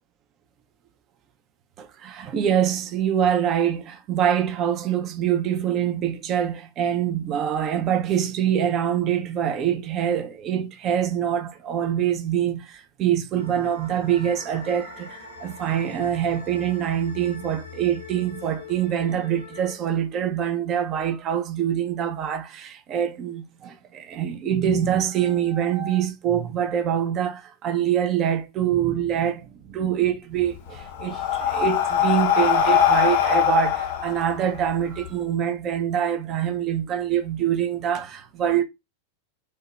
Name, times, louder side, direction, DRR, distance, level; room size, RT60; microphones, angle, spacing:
voice 1, 1.8-38.6, right 9 dB, 35° right, 0.3 m, -25 dB
sound 1, 13.3-19.7, left 4 dB, 80° right, 0.9 m, -42 dB
Breathing, 30.4-35.1, left 8 dB, 50° left, 0.3 m, -22 dB
2.7 x 2.0 x 2.2 m
figure-of-eight pair, 90°, 0 cm